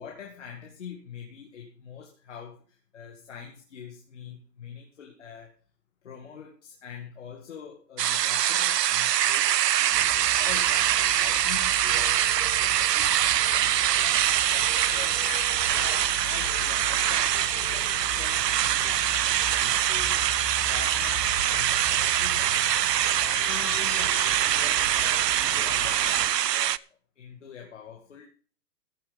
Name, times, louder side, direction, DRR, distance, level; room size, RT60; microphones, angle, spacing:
voice 1, 0.0-5.5 6.0-12.2 12.6-14.1 14.5-15.3 15.7-20.2 20.6-25.2 25.5-26.8 27.2-28.2, left 7 dB, 45° left, 1 dB, 2.2 m, -44 dB
sound 1, 8.0-26.8, right 11 dB, 75° right, 0.7 m, -24 dB
sound 2, 9.9-26.3, left 3 dB, 5° left, 2.1 m, -39 dB
Bird, 17.2-23.1, right 3 dB, 15° right, 1.0 m, -49 dB
15.0 x 7.9 x 5.3 m, 0.39 s
hypercardioid pair, 180°, 49 cm